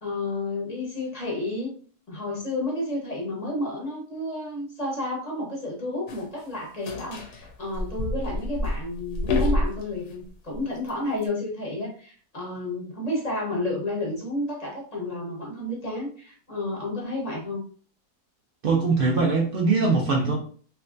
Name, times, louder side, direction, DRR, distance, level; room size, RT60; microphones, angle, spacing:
voice 1, 0.0-1.7 2.1-17.6, left 1 dB, 30° left, -2 dB, 1.0 m, -31 dB
sound 1, 6.1-6.2 6.9-10.1 10.5-11.3, left 1 dB, 80° left, 1.2 m, -28 dB
voice 2, 18.6-20.4, right 4 dB, 80° right, 0 dB, 0.4 m, -22 dB
3.3 x 2.8 x 2.5 m, 0.43 s
omnidirectional pair, 1.7 m